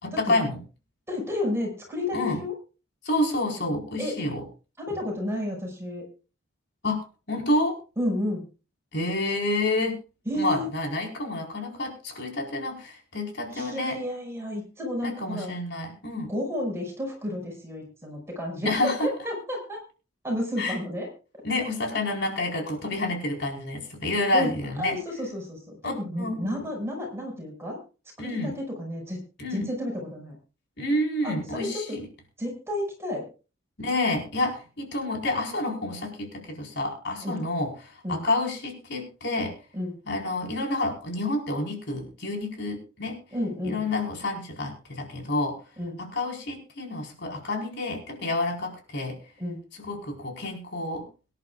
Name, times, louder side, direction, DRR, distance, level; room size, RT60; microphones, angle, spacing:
voice 1, 0.0-0.6 2.1-2.4 3.0-4.4 6.8-7.0 7.3-7.8 8.9-10.0 10.4-14.0 15.0-16.3 18.6-19.1 20.6-20.8 21.4-25.0 25.8-26.6 28.2-28.5 29.4-29.7 30.8-32.1 33.8-39.5 40.1-43.2 43.6-45.6 46.0-49.2 49.8-51.0, left 2 dB, 60° left, 1 dB, 4.5 m, -29 dB
voice 2, 1.1-2.5 4.0-4.2 4.8-6.0 8.0-8.4 10.3-10.7 13.5-15.5 16.3-18.7 19.0-19.8 20.2-21.1 24.3-24.5 24.8-27.8 28.2-29.2 29.5-30.4 31.2-32.0 32.4-33.3 37.2-37.4 38.0-38.2 39.7-39.9 43.3-43.8 45.8-46.0 49.4-49.6, left 1 dB, 15° right, 1 dB, 5.7 m, -31 dB
24.0 x 10.5 x 2.4 m, 0.34 s
head